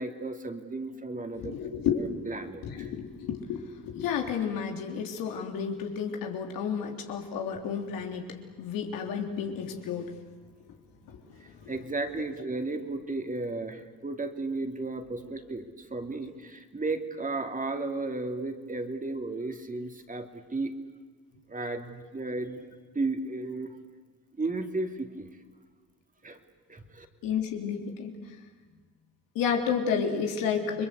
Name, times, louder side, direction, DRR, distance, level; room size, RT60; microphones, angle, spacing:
voice 1, 0.0-1.5 2.0-2.9 11.7-15.6 15.9-20.3 20.5-20.7 21.5-22.7 22.9-23.7 24.4-25.3 26.2-26.4 26.7-27.0, right 3 dB, 25° right, 5 dB, 3.0 m, -34 dB
voice 2, 1.3-2.0 2.6-8.3 8.6-10.1 27.2-28.1 29.4-30.9, left 7 dB, 85° left, 3 dB, 3.6 m, -31 dB
30.0 x 22.0 x 8.4 m, 1.4 s
cardioid pair, 85°, 33 cm